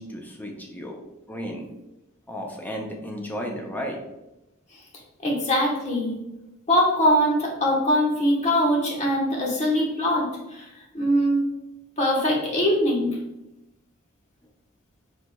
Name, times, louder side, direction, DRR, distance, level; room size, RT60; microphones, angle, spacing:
voice 1, 0.0-1.7 2.3-4.0, equal, 10° left, 1 dB, 0.6 m, -34 dB
voice 2, 5.2-6.1 6.7-10.2 10.5-10.7 10.9-11.4 12.0-13.2, equal, 35° left, -3 dB, 1.1 m, -22 dB
4.8 x 4.2 x 2.3 m, 0.96 s
head